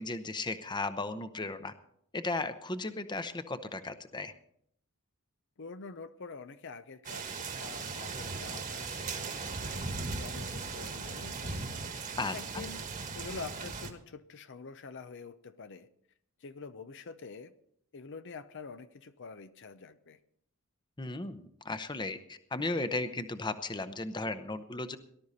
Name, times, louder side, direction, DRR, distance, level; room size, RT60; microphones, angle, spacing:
voice 1, 0.0-1.7 2.1-4.3 12.2-12.6 21.0-25.0, left 2 dB, 20° left, 10 dB, 0.8 m, -35 dB
voice 2, 5.6-11.7 12.3-12.9 13.1-15.9 16.4-17.5 17.9-20.2, left 4 dB, 55° left, 11 dB, 0.7 m, -46 dB
sound 1, 7.0-13.9, right 4 dB, 35° right, 1.5 m, -38 dB
18.5 x 12.0 x 4.2 m, 0.69 s
head